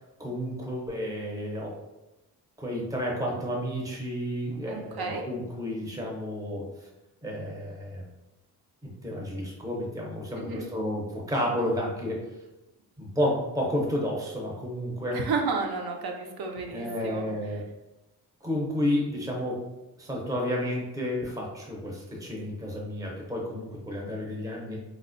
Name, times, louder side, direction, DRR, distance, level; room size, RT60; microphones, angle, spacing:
voice 1, 0.2-1.8 2.6-6.7 7.2-8.0 8.8-12.2 13.0-15.2 16.7-17.6 18.4-19.6 20.0-24.8, equal, 10° right, -2 dB, 0.6 m, -31 dB
voice 2, 4.7-5.2 10.4-10.7 15.1-17.3, right 4 dB, 65° right, 2 dB, 0.5 m, -32 dB
4.2 x 2.1 x 2.5 m, 1.0 s
cardioid pair, 125°, 40 cm